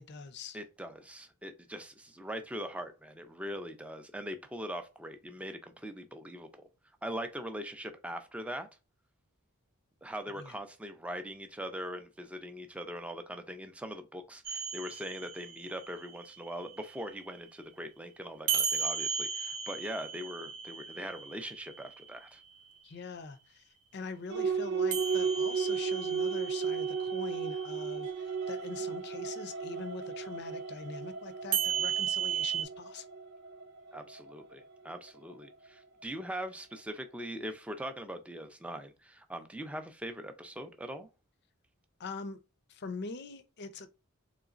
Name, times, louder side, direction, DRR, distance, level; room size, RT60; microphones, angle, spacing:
voice 1, 0.0-0.6 10.4-10.6 22.8-23.6 23.9-33.0 42.0-42.4 42.7-43.9, left 4 dB, 50° left, 0.5 m, -43 dB
voice 2, 0.5-6.7 7.0-8.7 10.0-22.4 33.9-41.1, equal, 5° right, 0.4 m, -41 dB
sound 1, 14.4-17.3 18.5-22.6 24.9-28.0 31.5-32.6, right 7 dB, 90° right, 0.8 m, -36 dB
sound 2, 24.3-36.2, right 6 dB, 55° right, 0.6 m, -35 dB
3.9 x 3.1 x 2.4 m
head